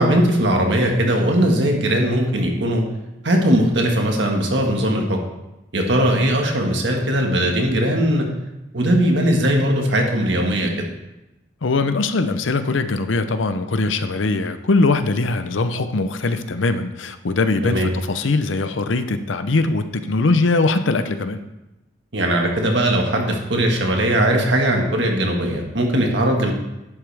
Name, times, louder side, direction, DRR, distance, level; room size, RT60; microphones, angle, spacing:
voice 1, 0.0-2.8 3.2-5.2 5.7-8.3 8.7-10.7 17.6-17.9 22.1-26.5, right 1 dB, 65° right, 1 dB, 1.6 m, -19 dB
voice 2, 11.6-21.4, left 3 dB, 80° left, 10 dB, 0.7 m, -21 dB
11.0 x 7.9 x 3.4 m, 0.95 s
head